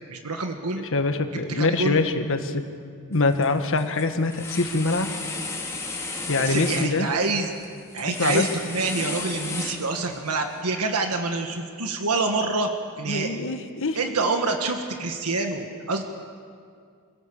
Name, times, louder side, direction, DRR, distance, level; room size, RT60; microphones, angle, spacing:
voice 1, 0.1-0.8 1.5-2.0 6.1-7.5 7.9-12.7 13.0-13.4 13.9-16.0, right 3 dB, 90° right, 4 dB, 1.6 m, -27 dB
voice 2, 0.7-2.6 3.1-5.1 6.3-7.1 8.1-8.5 13.1-14.0, left 3 dB, 60° left, 7 dB, 1.5 m, -24 dB
sound 1, 3.1-3.5 3.8-10.3, left 3 dB, 15° left, 2.4 m, -34 dB
27.5 x 17.5 x 7.2 m, 2.2 s
head